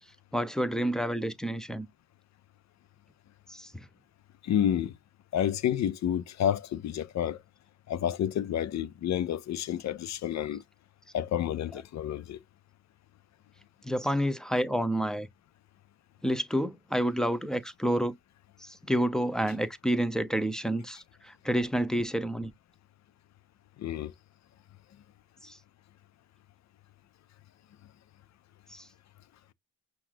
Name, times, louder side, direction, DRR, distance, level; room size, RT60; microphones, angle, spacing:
voice 1, 0.3-1.9 3.5-3.9 11.7-11.8 13.8-15.3 16.2-18.1 18.6-22.5 25.4-25.6 28.7-28.9, equal, ahead, 0.7 m, -29 dB
voice 2, 4.4-4.9 5.3-7.4 7.9-10.6 11.1-12.4 23.8-24.1, left 10 dB, 50° left, 0.6 m, -29 dB
5.7 x 2.5 x 2.6 m
supercardioid pair, 60°, 37 cm